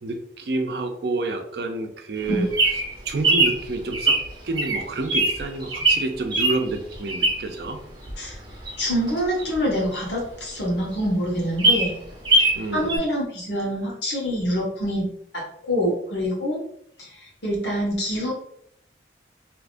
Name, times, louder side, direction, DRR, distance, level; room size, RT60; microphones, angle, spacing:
voice 1, 0.0-2.5 3.0-4.2 4.4-7.8 12.5-13.0, right 2 dB, 65° right, 5 dB, 0.5 m, -29 dB
Bird vocalization bird call bird song, 2.2-7.6 8.1-10.2 10.6-10.7 10.9-11.0 11.4-12.6 12.9-13.0, right 2 dB, 25° right, 0.7 m, -22 dB
voice 2, 8.8-11.9 12.3-16.6 17.0-18.3, equal, 70° left, -4 dB, 1.3 m, -26 dB
3.5 x 2.8 x 2.5 m, 0.68 s
head